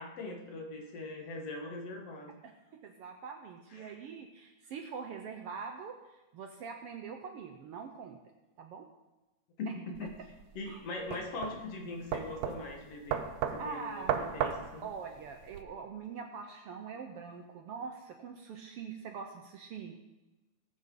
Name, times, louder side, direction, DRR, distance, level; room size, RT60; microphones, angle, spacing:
voice 1, 0.0-2.4 3.7-4.0 9.6-10.2 10.5-13.3 13.5-14.9, left 2 dB, 60° left, 2 dB, 2.4 m, -41 dB
voice 2, 2.8-6.0 6.3-8.2 8.6-8.8 10.6-10.8 13.6-14.3 14.8-19.9, right 6 dB, 70° right, 4 dB, 1.5 m, -43 dB
sound 1, 10.0-15.6, right 8 dB, 90° right, 2.2 m, -36 dB
19.0 x 8.7 x 3.8 m, 1.0 s
omnidirectional pair, 3.3 m